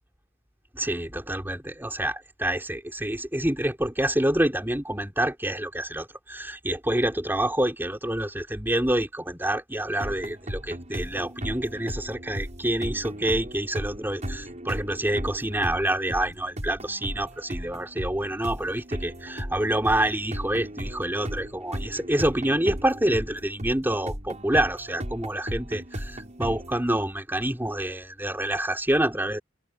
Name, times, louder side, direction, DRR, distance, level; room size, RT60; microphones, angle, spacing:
voice 1, 0.7-29.4, right 1 dB, 10° right, 3.9 m, -27 dB
sound 1, 10.0-26.8, equal, 35° right, 7.4 m, -36 dB
head